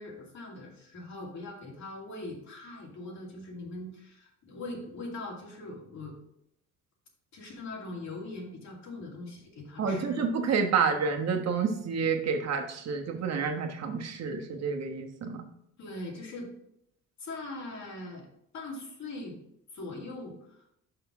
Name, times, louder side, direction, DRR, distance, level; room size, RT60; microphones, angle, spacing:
voice 1, 0.0-6.2 7.3-10.3 15.8-16.5 17.2-18.3 18.5-19.4 19.7-20.6, left 2 dB, 65° left, -2 dB, 2.4 m, -41 dB
voice 2, 9.8-15.4, right 5 dB, 60° right, 3 dB, 1.2 m, -29 dB
5.7 x 5.6 x 4.6 m, 0.74 s
cardioid pair, 120°, 30 cm